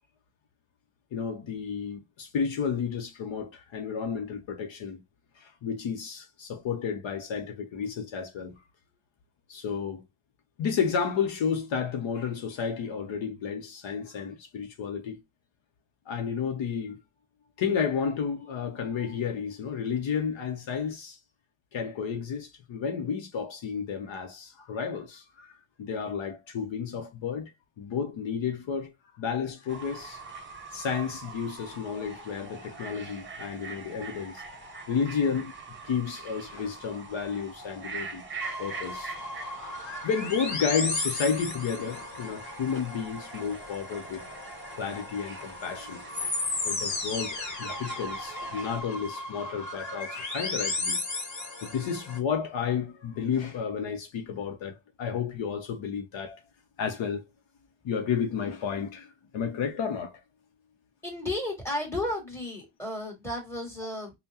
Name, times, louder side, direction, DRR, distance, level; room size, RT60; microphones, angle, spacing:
voice 1, 1.1-5.0 5.4-8.6 9.5-10.0 10.6-15.2 16.1-17.0 17.6-21.2 21.7-25.5 25.8-27.5 27.8-28.9 29.2-30.2 30.7-34.4 34.9-35.5 35.9-38.3 38.6-39.2 40.0-44.4 44.8-46.0 46.6-51.0 51.6-56.4 56.8-57.2 57.8-60.2, left 6 dB, 65° left, 0.8 m, -32 dB
Fowl / Bird, 29.7-48.8, right 4 dB, 25° right, 0.9 m, -43 dB
sound 1, 38.4-52.2, left 2 dB, 35° left, 1.5 m, -35 dB
voice 2, 61.0-64.1, left 1 dB, 5° left, 1.8 m, -33 dB
5.6 x 2.2 x 2.7 m
wide cardioid pair, 175°, 49 cm